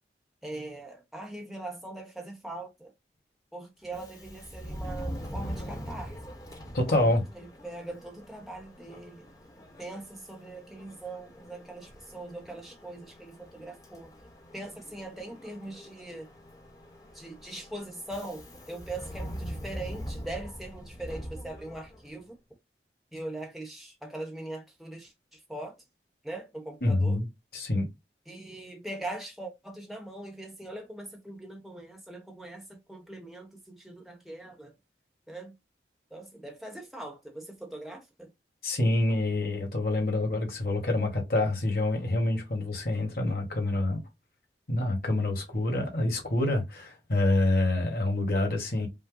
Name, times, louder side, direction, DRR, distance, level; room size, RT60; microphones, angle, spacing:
voice 1, 0.4-2.9 3.5-6.1 6.9-9.3 9.8-14.1 14.5-16.3 17.1-22.4 23.1-25.8 26.2-27.2 28.3-34.7 35.3-35.5 36.1-38.3, right 2 dB, ahead, 1.1 m, -41 dB
Subway metro underground, 3.8-22.2, equal, 20° left, 1.1 m, -43 dB
voice 2, 6.7-7.2 26.8-27.2 27.5-27.9 38.6-44.0 44.7-48.9, left 2 dB, 55° left, 1.6 m, -27 dB
5.4 x 2.2 x 3.9 m
head